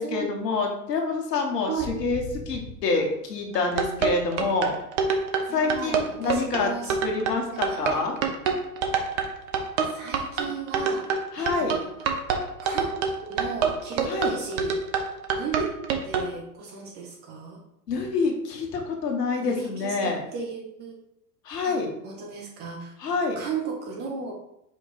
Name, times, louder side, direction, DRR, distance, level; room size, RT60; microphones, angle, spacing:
voice 1, 0.0-1.7 2.0-4.7 5.5-6.7 7.0-8.2 11.3-11.7 14.0-14.3 17.9-20.2 21.4-21.9 23.0-23.4, left 3 dB, 70° left, 1 dB, 1.2 m, -27 dB
sound 1, 1.8-5.1 5.4-7.7 8.0-8.3 8.6-10.6 10.9-11.0 11.3-11.7 12.0-12.1 14.3-14.4, left 1 dB, 35° left, 0.8 m, -42 dB
sound 2, 3.5-16.3, right 6 dB, 50° right, 0.8 m, -26 dB
voice 2, 5.5-8.0 9.9-11.1 11.4-11.9 12.6-14.8 15.3-15.7 16.0-17.6 19.4-21.0 21.6-21.8 22.0-22.9 23.4-24.3, right 5 dB, 20° right, 1 dB, 0.4 m, -35 dB
5.0 x 2.3 x 4.0 m, 0.81 s
figure-of-eight pair, 95°, 50 cm